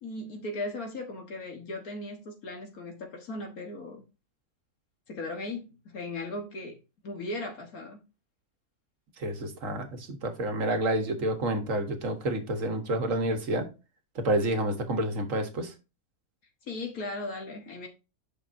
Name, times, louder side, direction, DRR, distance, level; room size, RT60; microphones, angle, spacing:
voice 1, 0.0-4.0 5.1-6.8 7.0-8.0 16.6-17.9, left 2 dB, 70° left, 1.8 m, -37 dB
voice 2, 9.2-13.7 14.1-15.7, right 1 dB, 60° right, 1.7 m, -29 dB
8.7 x 6.1 x 2.6 m
omnidirectional pair, 1.6 m